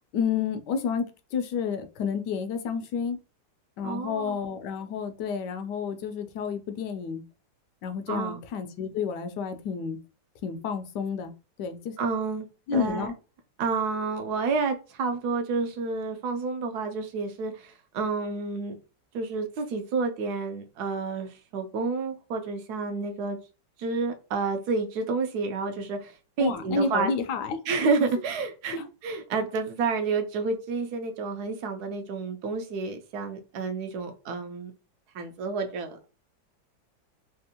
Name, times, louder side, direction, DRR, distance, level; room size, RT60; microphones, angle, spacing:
voice 1, 0.1-3.2 3.8-7.2 7.8-10.0 10.4-11.3 11.6-11.9 12.7-13.1 26.4-27.6 28.7-28.9, left 6 dB, 75° left, 1.1 m, -30 dB
voice 2, 3.8-4.4 8.1-8.4 12.0-12.5 12.7-13.1 13.6-18.8 19.1-23.4 23.8-26.1 26.4-27.1 27.7-28.8 29.0-34.7 35.1-36.1, right 4 dB, 70° right, 1.0 m, -29 dB
3.5 x 2.4 x 2.7 m
omnidirectional pair, 2.1 m